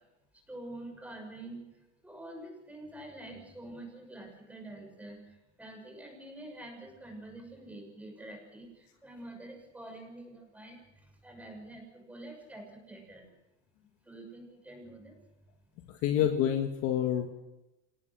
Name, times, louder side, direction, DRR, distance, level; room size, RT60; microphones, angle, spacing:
voice 1, 0.5-1.6 2.0-13.3 14.0-15.2, right 1 dB, 5° right, 3 dB, 6.5 m, -47 dB
voice 2, 15.9-17.3, left 10 dB, 40° left, 5 dB, 1.9 m, -28 dB
27.0 x 18.5 x 6.4 m, 0.95 s
supercardioid pair, 150°, 36 cm